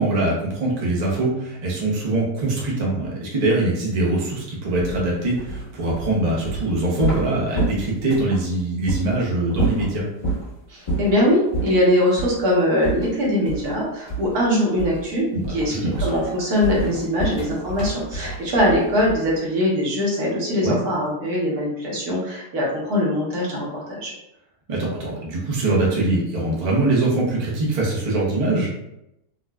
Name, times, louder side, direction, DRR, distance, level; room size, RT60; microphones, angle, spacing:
voice 1, 0.0-10.0 15.3-15.4 15.7-16.1 20.6-20.8 24.7-28.7, right 2 dB, 40° right, -4 dB, 0.5 m, -23 dB
Heavy Footsteps, 4.7-8.4 8.9-9.0 9.5-10.5 10.9-11.2 11.5-11.8 12.2-12.4 12.8-13.8 14.1-14.4 14.8-15.1 15.4-19.4, right 2 dB, 20° left, 1.1 m, -28 dB
voice 2, 10.7-15.7 16.0-24.1, left 1 dB, 70° right, -4 dB, 1.4 m, -22 dB
3.8 x 2.3 x 2.2 m, 0.84 s
omnidirectional pair, 1.8 m